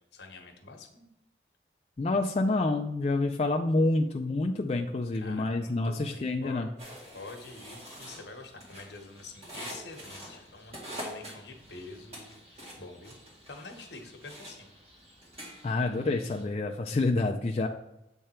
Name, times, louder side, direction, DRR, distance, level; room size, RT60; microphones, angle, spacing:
voice 1, 0.1-1.0 5.1-6.7 7.1-13.2 13.5-14.7, left 3 dB, 75° left, 4 dB, 1.1 m, -47 dB
voice 2, 2.0-6.7 15.6-17.7, left 2 dB, 35° left, 2 dB, 0.3 m, -28 dB
sound 1, 6.8-16.4, equal, 35° right, 1.8 m, -46 dB
7.6 x 3.5 x 4.3 m, 0.88 s
head